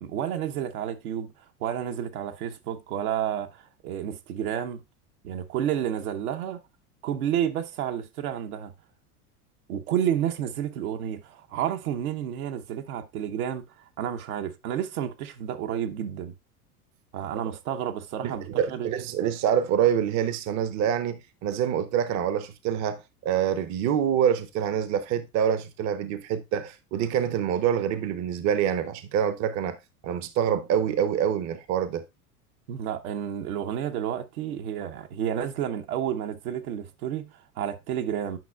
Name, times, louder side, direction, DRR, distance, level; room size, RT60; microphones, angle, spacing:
voice 1, 0.0-4.8 5.2-6.6 7.0-8.7 9.7-16.3 17.1-18.9 32.7-38.4, right 10 dB, 70° right, 1.0 m, -30 dB
voice 2, 18.2-29.8 30.0-32.0, right 9 dB, 40° right, 0.7 m, -26 dB
9.0 x 5.5 x 2.3 m
hypercardioid pair, 90°, 45 cm